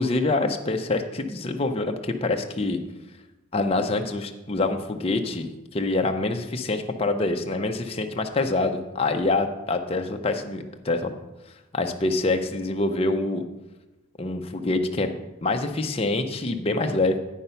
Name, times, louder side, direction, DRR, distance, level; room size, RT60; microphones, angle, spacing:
voice 1, 0.0-2.8 3.5-11.1 11.7-13.4 14.2-15.1 15.4-17.2, left 2 dB, 25° left, 5 dB, 0.5 m, -25 dB
9.1 x 5.5 x 5.6 m, 1.0 s
head